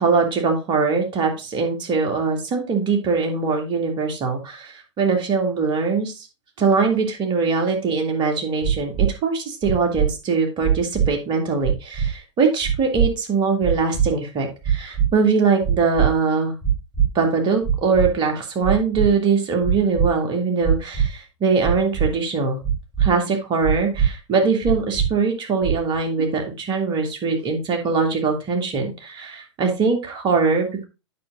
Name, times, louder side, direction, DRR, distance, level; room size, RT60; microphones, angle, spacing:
voice 1, 0.0-6.1 6.6-16.5 17.1-22.6 23.0-30.9, right 4 dB, 30° right, 3 dB, 2.5 m, -22 dB
sound 1, 8.6-9.1 9.6-10.1 10.6-11.1 11.6-12.1 12.6-13.1 13.6-14.1 14.6-15.1 15.6-16.1 16.6-17.1 17.6-18.1 18.6-19.1 19.6-20.1 20.6-21.1 21.6-22.1 22.6-23.1 23.6-24.1 24.6-25.1 25.6-26.0, right 8 dB, 10° left, 4.4 m, -20 dB
8.5 x 6.3 x 3.8 m, 0.28 s
figure-of-eight pair, 100°, 15 cm